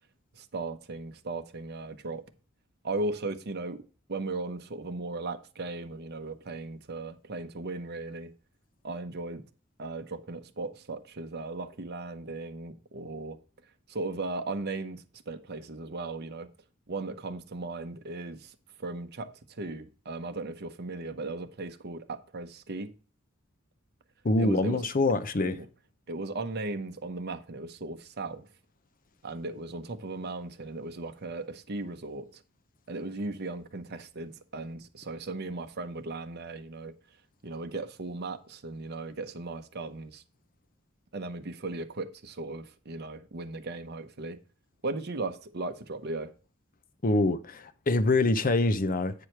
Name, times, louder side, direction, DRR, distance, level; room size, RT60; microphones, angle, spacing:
voice 1, 0.3-2.2 2.8-3.8 4.1-8.3 8.8-9.4 9.8-13.4 13.9-16.5 16.9-22.9 24.4-24.9 25.4-25.7 26.1-28.5 29.2-32.4 32.9-36.9 37.4-40.2 41.1-44.4 44.8-46.3, right 2 dB, 55° right, 0.8 m, -37 dB
voice 2, 24.2-25.6 47.0-49.1, left 2 dB, 45° left, 0.7 m, -25 dB
8.8 x 4.8 x 4.5 m
head